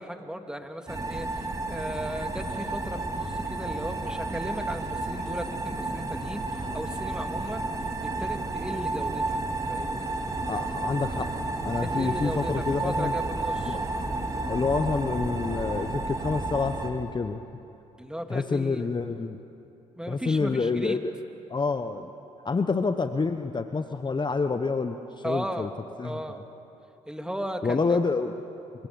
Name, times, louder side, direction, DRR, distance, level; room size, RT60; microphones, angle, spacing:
voice 1, 0.0-7.7 8.0-9.4 9.7-10.1 11.8-13.8 18.0-18.9 20.0-21.0 25.2-25.7 26.0-26.4 27.1-28.0, equal, 5° right, 5 dB, 2.8 m, -36 dB
sound 1, 0.9-16.9, right 2 dB, 25° right, 3.5 m, -31 dB
voice 2, 10.5-11.3 11.6-13.1 13.6-13.8 14.5-17.4 18.3-19.4 20.1-21.1 21.5-22.1 22.4-25.7 26.0-26.2 27.6-28.3, left 4 dB, 35° left, 8 dB, 1.1 m, -28 dB
29.0 x 25.5 x 7.1 m, 2.8 s
supercardioid pair, 55°, 14 cm